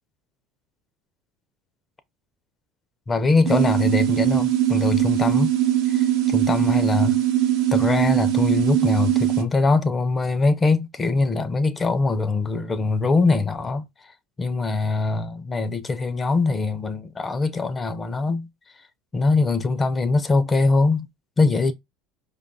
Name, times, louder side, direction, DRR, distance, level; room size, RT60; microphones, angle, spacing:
voice 1, 3.1-5.5 5.9-7.2 7.7-13.9 14.4-18.5 19.1-21.1 21.4-21.7, left 3 dB, 25° left, 0.5 m, -22 dB
sound 1, 3.5-9.4, right 12 dB, 65° right, 0.8 m, -21 dB
4.9 x 2.3 x 2.5 m
hypercardioid pair, 70°, 0 cm